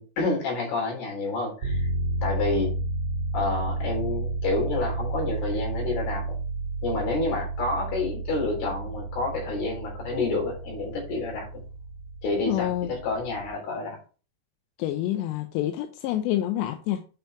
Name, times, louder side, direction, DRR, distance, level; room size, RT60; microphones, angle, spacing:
voice 1, 0.0-1.9 2.2-2.8 3.3-6.4 6.8-11.6 12.2-14.0, left 3 dB, 60° left, 5.5 m, -29 dB
sound 1, 1.6-13.5, right 2 dB, 25° right, 4.4 m, -32 dB
voice 2, 12.5-12.9 14.8-17.1, left 13 dB, 80° left, 2.7 m, -27 dB
9.0 x 5.4 x 4.5 m
omnidirectional pair, 5.3 m